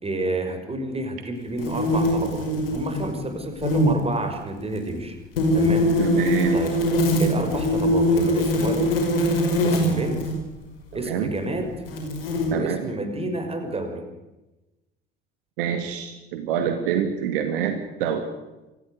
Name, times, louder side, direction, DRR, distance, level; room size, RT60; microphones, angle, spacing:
voice 1, 0.0-5.2 5.5-6.0 6.5-6.8 7.2-8.9 9.6-10.3 10.9-11.7 12.5-14.1, right 2 dB, 20° right, 6 dB, 6.1 m, -29 dB
sound 1, 1.6-3.1 3.4-3.9 5.4-10.4 11.2-11.3 11.9-12.5, left 1 dB, 75° left, 5.4 m, -22 dB
voice 2, 6.0-6.6 10.9-11.3 12.5-12.9 15.6-18.3, right 8 dB, 65° right, 7 dB, 2.3 m, -26 dB
26.5 x 16.5 x 9.6 m, 1.0 s
figure-of-eight pair, 60°, 29 cm